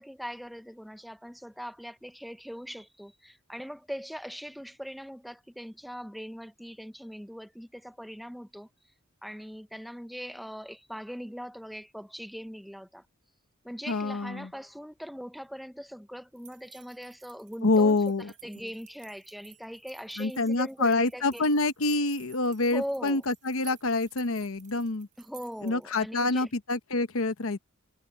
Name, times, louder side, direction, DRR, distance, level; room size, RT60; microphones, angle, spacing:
voice 1, 0.0-8.7 9.2-13.0 13.6-18.0 18.4-21.5 22.7-23.2 25.2-26.5, equal, ahead, 0.7 m, -41 dB
voice 2, 13.9-14.5 17.6-18.3 20.2-25.1 25.6-27.6, left 3 dB, 70° left, 1.0 m, -26 dB
sound 1, 16.4-25.9, right 11 dB, 40° right, 4.2 m, -54 dB
head